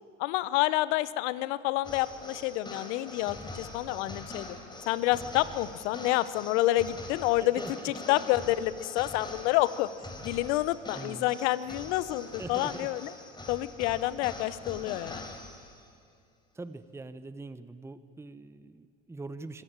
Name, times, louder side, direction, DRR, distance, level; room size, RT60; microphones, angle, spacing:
voice 1, 0.2-4.5 4.9-9.9 10.2-13.1 13.5-15.2, left 16 dB, 70° left, 16 dB, 1.1 m, -28 dB
sound 1, 1.8-15.9, left 2 dB, 10° left, 4.3 m, -44 dB
voice 2, 7.4-7.9 10.9-11.3 12.4-12.9 16.5-19.6, right 3 dB, 5° right, 12 dB, 1.0 m, -43 dB
25.5 x 16.5 x 8.9 m, 2.3 s
hypercardioid pair, 95°, 36 cm